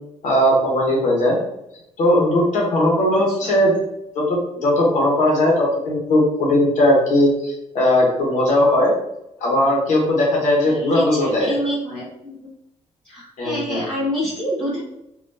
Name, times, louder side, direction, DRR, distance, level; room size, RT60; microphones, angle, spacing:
voice 1, 0.2-1.4 2.0-3.8 4.1-8.9 9.4-11.5 13.4-13.8, left 1 dB, 90° left, -3 dB, 1.2 m, -18 dB
voice 2, 3.1-3.5 10.6-12.5 13.0-14.8, equal, 10° left, -10 dB, 1.1 m, -27 dB
3.5 x 2.7 x 2.7 m, 0.84 s
cardioid pair, 125°, 12 cm